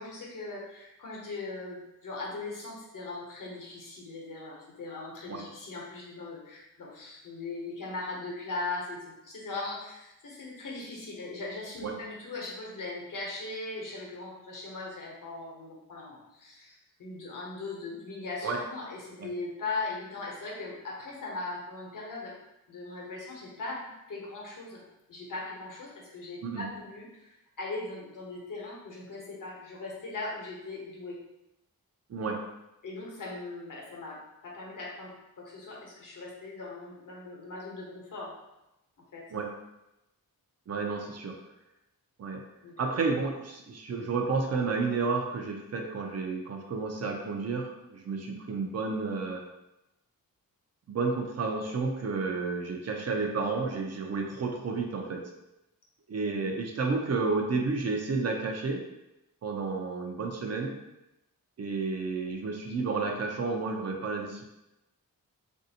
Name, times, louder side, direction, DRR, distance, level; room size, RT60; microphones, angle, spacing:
voice 1, 0.0-22.4 22.7-24.8 25.1-31.2 32.8-38.3 39.1-39.2 42.6-43.0 56.2-56.3, left 3 dB, 60° left, -3 dB, 1.0 m, -39 dB
voice 2, 32.1-32.5 39.3-39.5 40.7-41.4 42.2-42.4 42.8-49.4 50.9-55.3 56.1-58.8 59.4-60.8 61.6-64.5, right 4 dB, 45° right, 2 dB, 0.5 m, -31 dB
3.3 x 2.6 x 2.7 m, 0.92 s
wide cardioid pair, 125°, 36 cm